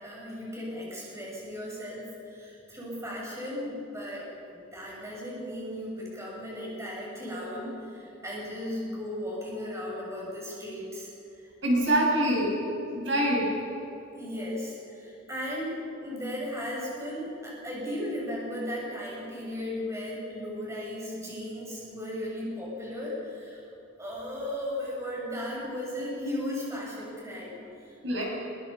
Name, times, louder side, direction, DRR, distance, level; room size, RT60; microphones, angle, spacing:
voice 1, 0.0-11.4 14.1-15.8 16.0-23.6 24.0-28.0, left 1 dB, 15° right, -4 dB, 7.3 m, -36 dB
voice 2, 11.6-12.5 12.9-13.5 28.0-28.2, right 1 dB, 65° right, -2 dB, 7.3 m, -24 dB
26.0 x 23.5 x 5.7 m, 2.9 s
head